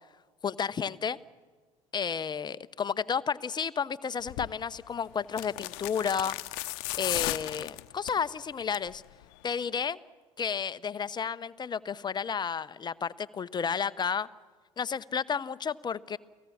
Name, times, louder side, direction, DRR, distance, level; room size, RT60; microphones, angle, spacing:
voice 1, 0.4-1.2 1.9-6.3 6.9-9.0 9.4-10.0 10.4-14.3 14.8-16.2, left 6 dB, 25° left, 16 dB, 0.8 m, -32 dB
sound 1, 4.3-4.5 5.3-8.2 8.6-8.9 9.2-9.3, left 21 dB, 60° left, 0.9 m, -34 dB
30.0 x 18.5 x 7.2 m, 1.4 s
hypercardioid pair, 70°, 17 cm